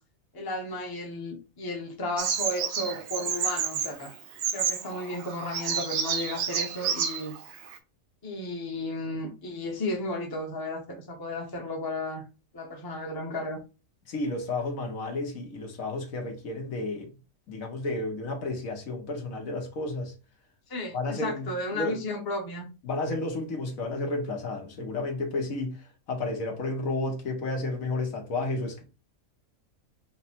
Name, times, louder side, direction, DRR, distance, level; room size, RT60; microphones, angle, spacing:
voice 1, 0.3-4.1 4.5-7.3 8.2-12.3 12.5-13.6 20.7-22.7, left 1 dB, 20° left, 0.7 m, -34 dB
Bird vocalization bird call bird song, 2.2-7.8, right 7 dB, 80° right, 1.1 m, -31 dB
voice 2, 14.1-17.1 17.5-20.1 20.9-22.0 22.8-28.8, left 2 dB, 75° left, 1.5 m, -32 dB
4.9 x 2.1 x 4.2 m
omnidirectional pair, 1.4 m